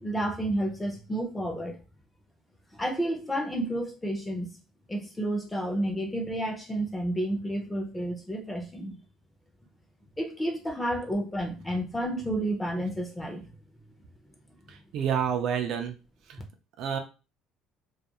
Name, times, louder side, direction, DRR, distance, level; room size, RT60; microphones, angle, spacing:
voice 1, 0.0-1.8 2.7-4.5 4.9-9.0 10.2-13.5, right 1 dB, 10° left, 3 dB, 0.6 m, -31 dB
voice 2, 14.7-16.0 16.3-16.4 16.8-17.0, right 8 dB, 55° right, 5 dB, 0.4 m, -29 dB
2.3 x 2.2 x 2.9 m, 0.31 s
cardioid pair, 155°, 0 cm